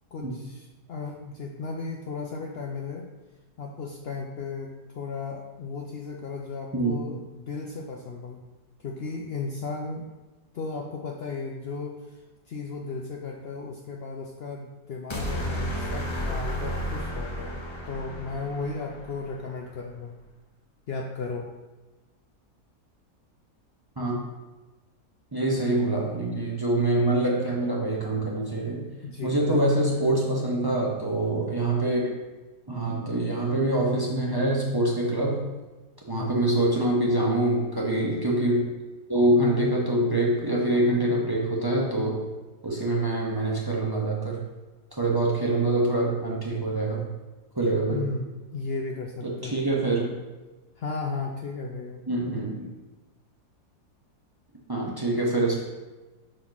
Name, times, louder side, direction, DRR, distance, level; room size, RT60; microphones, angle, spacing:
voice 1, 0.1-3.1 3.6-8.4 8.8-10.1 10.5-20.2 20.9-21.5 29.0-29.6 36.1-36.4 47.9-49.6 50.8-52.0, left 4 dB, 90° left, 1 dB, 0.5 m, -35 dB
voice 2, 6.7-7.1 24.0-24.1 25.3-28.8 29.2-32.0 32.7-35.4 36.1-38.7 39.1-42.2 42.6-44.4 45.0-47.1 47.6-48.0 49.2-50.1 52.1-52.7 54.7-55.6, right 1 dB, 20° right, -3 dB, 0.7 m, -25 dB
sound 1, 15.1-19.4, equal, 30° left, 0.5 m, -32 dB
6.0 x 5.1 x 4.0 m, 1.2 s
omnidirectional pair, 1.7 m